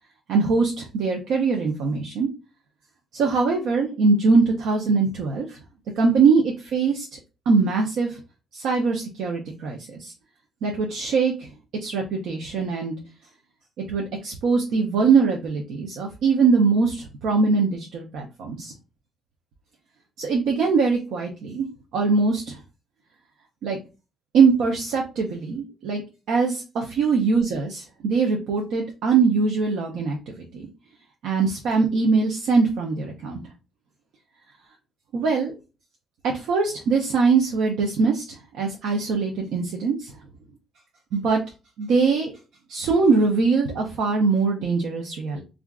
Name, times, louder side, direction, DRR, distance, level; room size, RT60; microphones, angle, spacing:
voice 1, 0.3-2.3 3.1-5.6 6.0-6.4 6.7-7.1 7.5-8.2 8.5-10.1 10.6-11.5 11.8-12.9 13.9-18.7 20.2-21.7 21.9-22.6 23.6-23.8 24.3-26.0 26.3-30.7 31.2-33.4 35.1-35.5 36.2-38.2 38.5-40.1 41.1-41.4 41.8-42.3 42.7-45.4, right 4 dB, 80° right, 1 dB, 0.5 m, -22 dB
3.4 x 2.4 x 2.2 m, 0.31 s
supercardioid pair, 60°, 0 cm